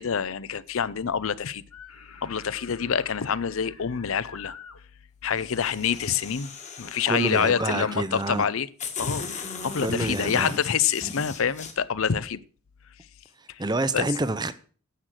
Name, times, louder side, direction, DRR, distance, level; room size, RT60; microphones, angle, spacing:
voice 1, 0.0-1.6 2.2-4.5 5.2-6.5 6.8-8.7 9.0-12.4 13.9-14.1, left 7 dB, 65° left, 0.6 m, -26 dB
sound 1, 1.7-4.8 6.1-6.2 7.5-8.0, left 6 dB, 80° left, 1.6 m, -45 dB
sound 2, 5.4-7.7 8.4-8.5 8.8-11.7, left 5 dB, 30° left, 1.8 m, -38 dB
voice 2, 7.1-8.5 9.8-10.5 13.4-14.5, right 2 dB, 20° right, 0.6 m, -28 dB
10.0 x 6.5 x 7.5 m
head